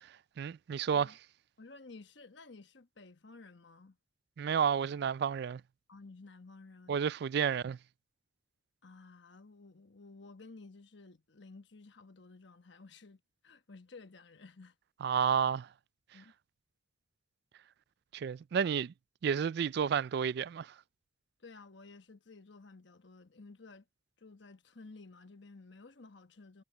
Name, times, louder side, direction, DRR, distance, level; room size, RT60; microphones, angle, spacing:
voice 1, 0.4-1.1 4.4-5.6 6.9-7.8 15.0-15.7 18.1-18.9 19.2-20.7, right 7 dB, 55° right, 0.3 m, -31 dB
voice 2, 1.6-4.0 5.9-7.0 8.8-14.8 16.1-16.3 21.4-23.8 24.2-26.6, left 3 dB, 60° left, 1.2 m, -54 dB
head